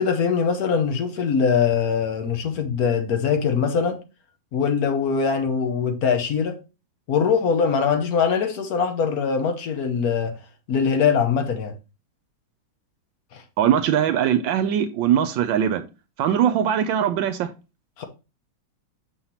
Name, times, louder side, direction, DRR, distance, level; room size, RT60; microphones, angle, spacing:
voice 1, 0.0-4.0 4.5-6.6 7.1-10.3 10.7-11.7 13.3-13.4 18.0-18.1, left 6 dB, 55° left, 1.3 m, -22 dB
voice 2, 13.6-15.8 16.2-17.5, right 9 dB, 75° right, 1.3 m, -21 dB
6.8 x 5.6 x 2.9 m
omnidirectional pair, 2.2 m